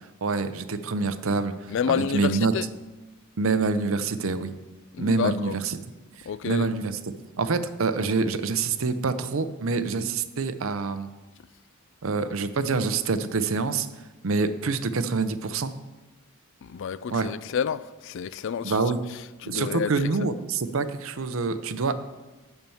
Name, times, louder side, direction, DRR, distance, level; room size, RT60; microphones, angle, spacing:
voice 1, 0.2-2.5 3.4-4.5 5.0-5.8 6.4-7.0 7.4-11.1 12.0-13.9 14.2-15.7 17.1-17.3 18.6-19.0 19.4-21.9, right 4 dB, 65° right, 0.6 m, -26 dB
voice 2, 1.7-2.7 4.9-5.6 6.3-6.7 16.6-18.8 19.4-20.1, left 7 dB, 60° left, 0.3 m, -29 dB
11.0 x 4.5 x 7.0 m
head